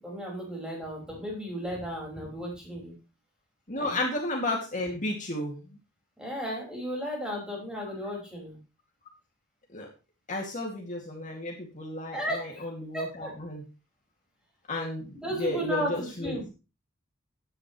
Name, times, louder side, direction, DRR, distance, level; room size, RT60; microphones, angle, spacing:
voice 1, 0.0-2.9 3.8-4.0 6.2-8.6 12.1-12.6 12.9-13.3 15.1-16.5, equal, 5° right, -2 dB, 5.7 m, -34 dB
voice 2, 3.7-5.6 9.7-9.9 10.3-12.2 12.6-13.6 14.7-15.1 15.4-16.3, left 1 dB, 40° left, 0 dB, 2.5 m, -32 dB
15.0 x 10.0 x 3.2 m, 0.30 s
head